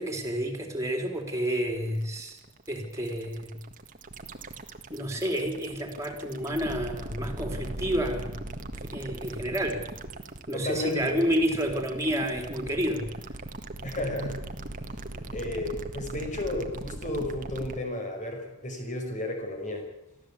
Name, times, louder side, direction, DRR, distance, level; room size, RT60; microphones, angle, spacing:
voice 1, 0.0-2.4 2.7-3.6 4.9-8.4 8.9-9.8 10.5-13.1, equal, 15° right, 3 dB, 3.8 m, -30 dB
sound 1, 1.1-17.8, right 2 dB, 35° right, 1.6 m, -39 dB
voice 2, 10.5-11.2 13.8-14.4 14.9-15.0 15.3-19.9, left 1 dB, 35° left, 3 dB, 5.5 m, -33 dB
24.0 x 15.0 x 8.6 m, 0.89 s
head